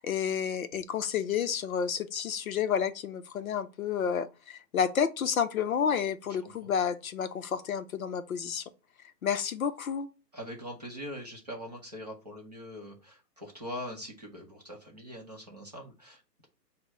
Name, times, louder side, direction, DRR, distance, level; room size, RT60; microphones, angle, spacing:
voice 1, 0.0-8.6 9.2-10.1, left 7 dB, 55° left, 0.5 m, -30 dB
voice 2, 10.3-16.5, equal, 25° right, 0.5 m, -42 dB
5.2 x 2.0 x 4.1 m
hypercardioid pair, 160°, 50 cm